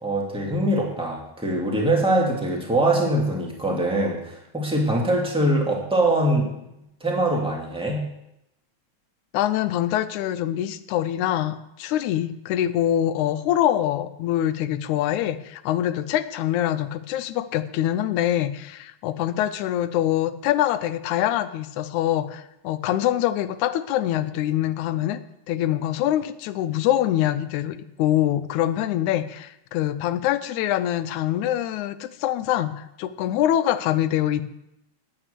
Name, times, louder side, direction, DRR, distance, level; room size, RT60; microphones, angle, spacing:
voice 1, 0.0-6.5 7.0-8.0, right 1 dB, ahead, -1 dB, 1.7 m, -23 dB
voice 2, 9.3-25.2 25.5-34.4, left 12 dB, 90° left, 12 dB, 2.1 m, -24 dB
9.5 x 9.0 x 6.7 m, 0.85 s
omnidirectional pair, 3.3 m